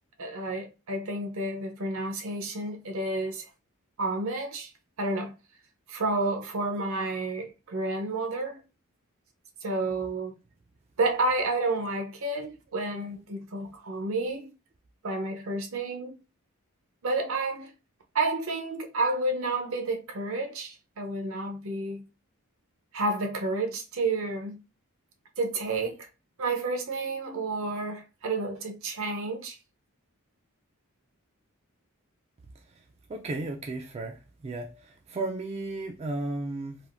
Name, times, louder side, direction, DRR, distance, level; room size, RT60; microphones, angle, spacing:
voice 1, 0.2-3.4 4.0-4.7 5.0-5.3 5.9-8.6 9.6-10.3 11.0-14.5 15.0-16.2 17.0-17.7 18.1-22.0 22.9-24.6 25.4-26.1 26.4-29.6, right 2 dB, 65° right, 0.6 m, -30 dB
voice 2, 33.1-36.8, right 2 dB, 30° right, 0.3 m, -34 dB
3.4 x 2.5 x 2.4 m
head